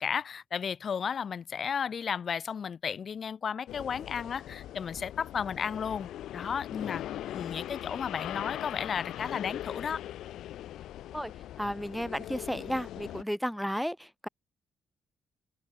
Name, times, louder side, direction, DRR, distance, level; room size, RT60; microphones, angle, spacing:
voice 1, 0.0-7.0 7.3-10.0, left 7 dB, 50° left, 0.7 m, -34 dB
sound 1, 3.7-13.2, left 12 dB, 80° left, 0.4 m, -40 dB
voice 2, 11.6-14.3, equal, ahead, 0.4 m, -33 dB
cardioid pair, 90°, 0 cm